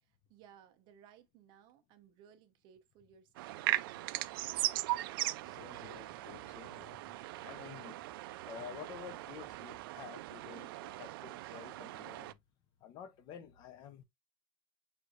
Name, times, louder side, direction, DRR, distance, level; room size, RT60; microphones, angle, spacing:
voice 1, 0.0-5.2, right 8 dB, 40° right, 0.8 m, -62 dB
sound 1, 3.4-12.3, right 17 dB, 70° right, 0.4 m, -39 dB
voice 2, 5.4-7.0 7.4-8.1 8.5-12.4 12.8-14.0, left 8 dB, 35° left, 0.6 m, -50 dB
6.3 x 2.6 x 2.4 m
supercardioid pair, 160°, 12 cm